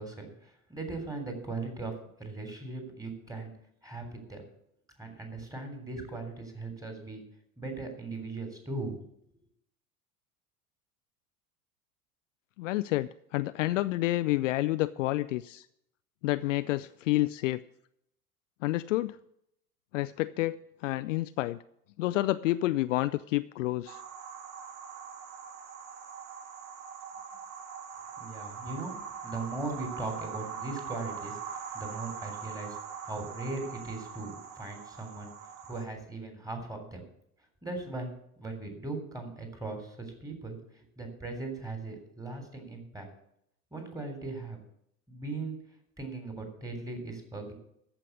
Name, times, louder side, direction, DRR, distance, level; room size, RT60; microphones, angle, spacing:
voice 1, 0.0-1.9 2.2-3.5 3.8-4.4 5.0-7.2 7.6-9.0 28.2-29.0 29.2-35.3 35.7-37.0 37.6-38.1 38.4-43.1 43.7-44.6 45.1-45.6 46.0-47.5, right 3 dB, 10° right, 4 dB, 3.4 m, -39 dB
voice 2, 12.6-15.7 16.2-17.6 18.6-19.2 19.9-21.6 22.0-24.0, left 17 dB, 55° left, 14 dB, 0.5 m, -29 dB
sound 1, 23.9-35.8, right 6 dB, 60° right, 1.5 m, -42 dB
14.0 x 5.8 x 8.1 m, 0.74 s
figure-of-eight pair, 75°, 45 cm